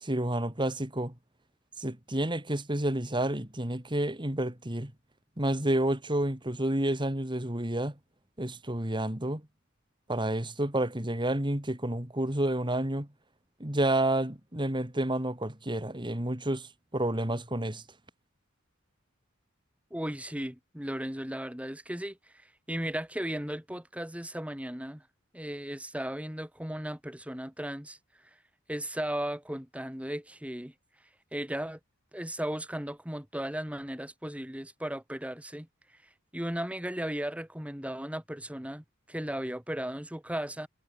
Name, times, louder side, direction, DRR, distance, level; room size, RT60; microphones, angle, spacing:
voice 1, 0.0-1.1 1.8-4.9 5.4-7.9 8.4-9.4 10.1-13.1 13.6-17.8, right 1 dB, 20° right, 2.8 m, -30 dB
voice 2, 19.9-25.0 25.3-28.0 28.7-30.7 31.3-31.8 32.1-35.7 36.3-40.7, right 1 dB, 5° right, 2.8 m, -36 dB
head